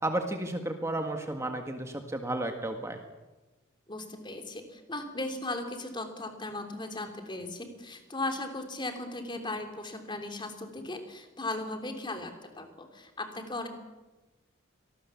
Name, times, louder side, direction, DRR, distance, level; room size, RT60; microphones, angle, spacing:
voice 1, 0.0-3.0, right 1 dB, 15° right, 4 dB, 1.7 m, -32 dB
voice 2, 3.9-13.7, left 2 dB, 25° left, 5 dB, 3.2 m, -37 dB
25.5 x 19.0 x 7.2 m, 1.1 s
head